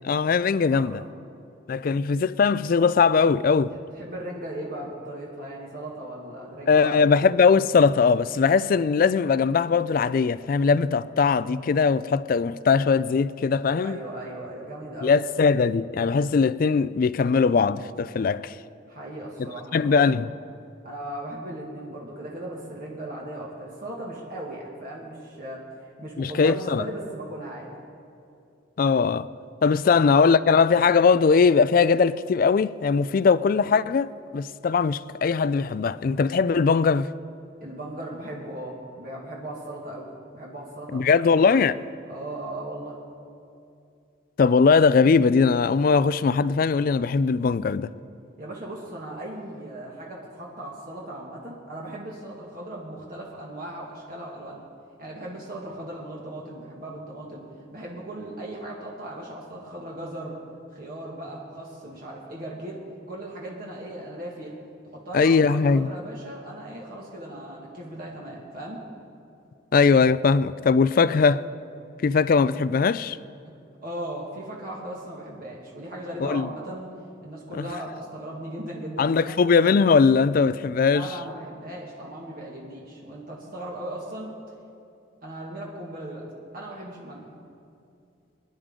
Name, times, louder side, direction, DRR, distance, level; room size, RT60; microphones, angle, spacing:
voice 1, 0.0-1.0 1.7-3.7 6.7-14.0 15.0-18.5 19.7-20.3 26.2-26.8 28.8-29.3 29.6-37.1 40.9-41.7 44.4-47.9 65.1-65.9 69.7-71.4 72.0-73.2 76.2-76.5 77.5-77.6 79.0-81.1, left 5 dB, 45° left, 0.3 m, -20 dB
voice 2, 0.6-1.1 3.9-7.2 13.8-15.2 18.9-20.0 20.8-25.6 26.0-27.7 29.8-30.0 37.6-40.1 40.3-41.7 42.1-43.0 48.4-54.6 55.0-57.4 57.7-60.4 60.7-62.8 63.1-64.6 64.9-68.8 73.8-76.9 77.2-79.4 80.9-84.3 85.2-86.3 86.5-87.3, right 1 dB, 50° right, 1.9 m, -37 dB
24.5 x 10.5 x 3.7 m
head